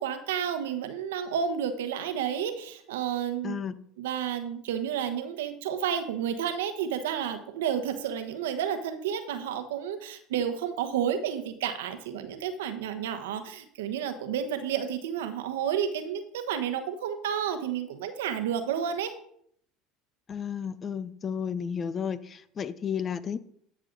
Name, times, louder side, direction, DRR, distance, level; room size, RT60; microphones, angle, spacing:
voice 1, 0.0-3.6 4.0-19.1, right 8 dB, 85° right, 9 dB, 1.1 m, -31 dB
voice 2, 3.4-3.8 20.3-23.4, left 7 dB, 35° left, 16 dB, 0.7 m, -32 dB
12.0 x 6.4 x 3.9 m, 0.67 s
hypercardioid pair, 90°, 0 cm